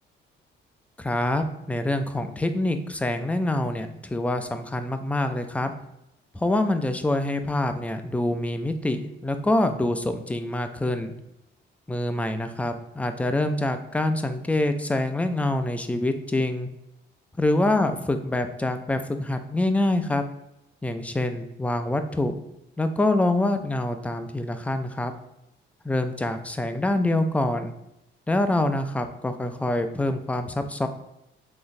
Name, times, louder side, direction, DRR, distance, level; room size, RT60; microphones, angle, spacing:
voice 1, 1.0-5.7 6.3-11.1 11.9-16.7 17.4-20.2 20.8-22.4 22.8-25.1 25.8-27.7 28.3-30.9, left 1 dB, 5° left, 8 dB, 0.3 m, -25 dB
3.9 x 3.0 x 2.5 m, 0.85 s
cardioid pair, 90°, 20 cm